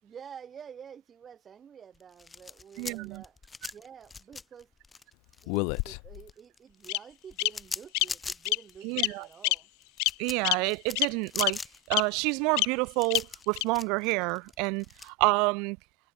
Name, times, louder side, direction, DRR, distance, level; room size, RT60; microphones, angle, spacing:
voice 1, 0.0-3.4 3.7-4.7 5.4-9.7, right 7 dB, 40° right, 4.9 m, -49 dB
sound 1, 1.9-5.9 6.1-15.1, left 4 dB, 20° left, 1.5 m, -41 dB
voice 2, 2.8-3.2 8.8-9.2 10.2-11.6 11.9-15.8, right 29 dB, 85° right, 0.7 m, -28 dB
Bird vocalization bird call bird song, 5.5-6.2 6.9-7.0 7.4-7.5 7.9-8.0 8.4-8.6 9.0-9.1 9.4-9.5 10.0-10.1 10.4-10.5 11.0-11.1 11.4-11.5 11.9-12.0 12.6-12.7 13.1-13.2 13.6-13.7, left 37 dB, 85° left, 0.9 m, -26 dB
cardioid pair, 110°, 0 cm